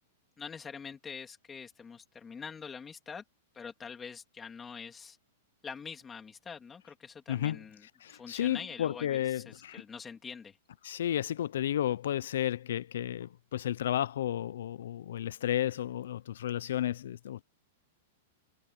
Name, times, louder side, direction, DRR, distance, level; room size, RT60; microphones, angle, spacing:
voice 1, 0.4-3.2 3.5-5.2 5.6-7.9 8.1-10.6, left 6 dB, 15° left, 2.8 m, -45 dB
voice 2, 7.3-7.6 8.0-9.8 10.8-17.4, left 11 dB, 75° left, 0.6 m, -32 dB
supercardioid pair, 160°, 0 cm